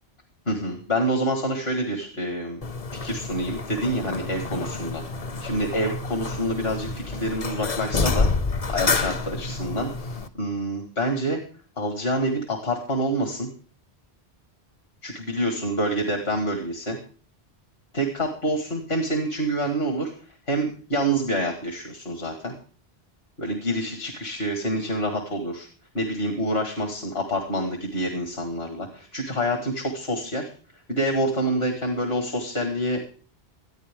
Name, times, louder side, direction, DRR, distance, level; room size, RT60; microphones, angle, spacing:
voice 1, 0.5-2.6 2.9-5.0 5.4-8.3 8.7-11.4 11.8-13.5 15.0-17.0 17.9-20.1 20.5-22.5 23.4-25.7 25.9-30.5 30.9-33.1, right 1 dB, 65° left, 3 dB, 2.2 m, -27 dB
sound 1, 2.6-10.3, left 3 dB, 40° left, 0.8 m, -28 dB
23.5 x 9.8 x 3.7 m, 0.41 s
omnidirectional pair, 1.1 m